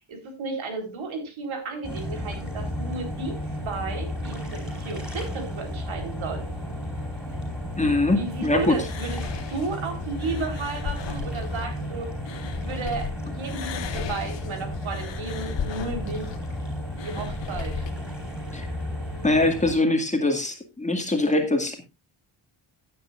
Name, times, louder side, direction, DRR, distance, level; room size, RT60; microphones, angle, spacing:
voice 1, 0.1-3.4 3.6-6.5 8.1-12.2 12.5-16.3 17.0-17.9, right 3 dB, 75° right, 5 dB, 3.9 m, -33 dB
sound 1, 1.8-19.7, equal, ahead, 4.8 m, -33 dB
voice 2, 7.8-8.8 18.5-18.7 19.2-21.8, left 2 dB, 15° left, 3 dB, 2.0 m, -23 dB
sound 2, 8.7-13.1 13.4-17.9, left 7 dB, 65° left, 1.6 m, -37 dB
17.0 x 9.6 x 2.5 m, 0.26 s
wide cardioid pair, 170°, 48 cm